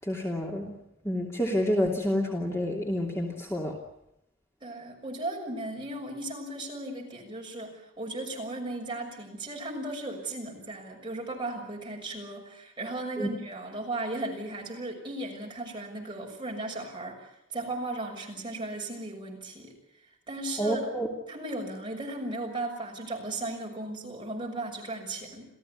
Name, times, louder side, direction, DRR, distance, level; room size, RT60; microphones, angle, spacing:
voice 1, 0.0-0.7 1.0-3.7 13.2-13.3 20.6-21.1, equal, 15° left, 0 dB, 2.9 m, -28 dB
voice 2, 4.6-19.8 20.3-20.8 21.3-25.5, right 2 dB, 25° right, 0 dB, 6.5 m, -36 dB
28.0 x 16.0 x 9.4 m, 0.83 s
head